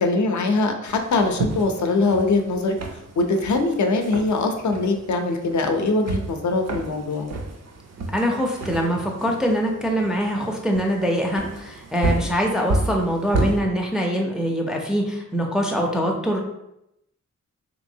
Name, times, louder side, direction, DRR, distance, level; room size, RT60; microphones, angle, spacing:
voice 1, 0.0-2.7 3.2-7.3, left 3 dB, 70° left, 4 dB, 0.5 m, -22 dB
sound 1, 0.9-13.6, right 2 dB, 55° right, 0.5 m, -31 dB
voice 2, 8.1-16.4, equal, ahead, 0 dB, 0.4 m, -23 dB
3.4 x 2.9 x 2.6 m, 0.83 s
wide cardioid pair, 145°, 31 cm